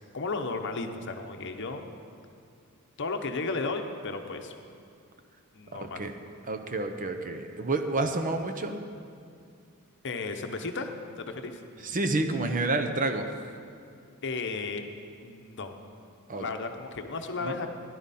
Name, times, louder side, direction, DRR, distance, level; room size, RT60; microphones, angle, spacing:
voice 1, 0.1-1.8 3.0-4.5 5.5-6.0 10.0-10.9 11.2-11.6 14.2-14.9 15.2-15.8 16.3-17.7, left 3 dB, 55° left, 5 dB, 0.8 m, -34 dB
voice 2, 5.7-6.1 6.5-8.8 11.8-13.3 16.3-16.5 17.4-17.6, right 2 dB, 35° right, 7 dB, 0.7 m, -29 dB
16.5 x 11.0 x 4.2 m, 2.3 s
head